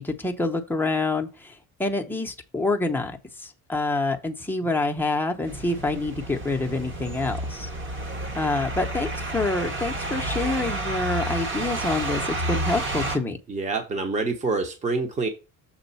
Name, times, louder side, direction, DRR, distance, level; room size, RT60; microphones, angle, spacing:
voice 1, 0.0-7.7 8.4-13.4, left 2 dB, 5° left, 0.8 m, -27 dB
sound 1, 5.5-13.2, right 1 dB, 35° right, 1.3 m, -30 dB
voice 2, 13.5-15.3, right 3 dB, 20° right, 1.0 m, -26 dB
7.2 x 3.7 x 5.5 m
cardioid pair, 175°, 34 cm